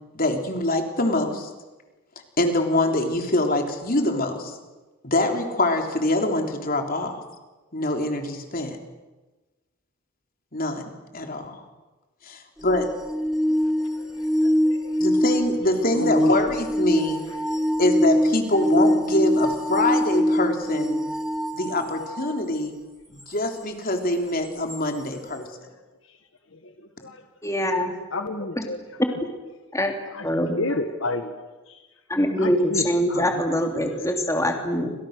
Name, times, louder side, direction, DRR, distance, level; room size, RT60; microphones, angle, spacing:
voice 1, 0.1-1.5 2.4-4.6 5.0-7.2 7.7-8.8 10.5-11.6 12.2-12.9 15.0-17.2 17.8-21.0 21.5-22.7 23.1-25.7, left 2 dB, 40° left, 4 dB, 3.6 m, -24 dB
sound 1, 12.6-22.4 24.7-24.8, equal, ahead, 1.5 m, -23 dB
voice 2, 13.9-15.1 16.0-16.4 17.3-17.4 26.0-26.2 26.5-27.3 28.1-28.8 30.1-30.3 30.5-31.9 32.4-33.6 34.0-34.1, left 2 dB, 60° left, 7 dB, 1.7 m, -32 dB
voice 3, 27.4-27.9 28.6-28.7 29.7-29.9 30.2-30.6 32.1-34.9, equal, 15° left, 3 dB, 2.9 m, -23 dB
29.0 x 26.0 x 6.7 m, 1.2 s
head